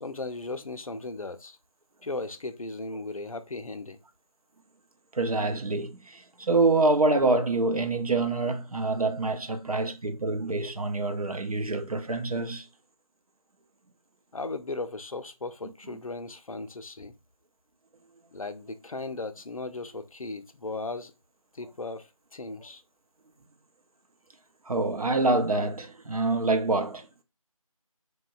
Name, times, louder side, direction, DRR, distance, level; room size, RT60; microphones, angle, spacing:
voice 1, 0.0-1.6 2.0-4.0 14.3-17.1 18.3-21.1 21.5-22.8, left 3 dB, 70° left, 0.4 m, -36 dB
voice 2, 5.1-12.7 24.7-27.1, right 3 dB, 80° right, 0.6 m, -26 dB
2.7 x 2.1 x 2.4 m
figure-of-eight pair, 170°, 18 cm